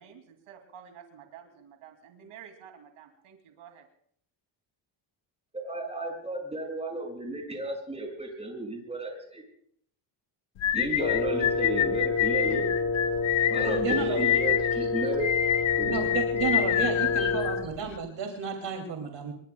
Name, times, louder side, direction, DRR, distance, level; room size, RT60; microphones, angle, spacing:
voice 1, 0.0-3.8, right 8 dB, 80° right, 4 dB, 2.7 m, -50 dB
voice 2, 5.5-9.4 10.7-12.7 13.4-15.3 15.8-16.0 17.2-17.3, right 2 dB, 10° right, 0 dB, 6.6 m, -34 dB
sound 1, 10.6-18.0, left 11 dB, 70° left, 1.1 m, -27 dB
Wind instrument woodwind instrument, 11.0-17.7, left 4 dB, 25° left, 1.3 m, -29 dB
voice 3, 13.6-14.3 15.8-19.3, right 6 dB, 60° right, 1 dB, 2.9 m, -32 dB
27.5 x 22.5 x 2.3 m, 0.64 s
cardioid pair, 135°, 49 cm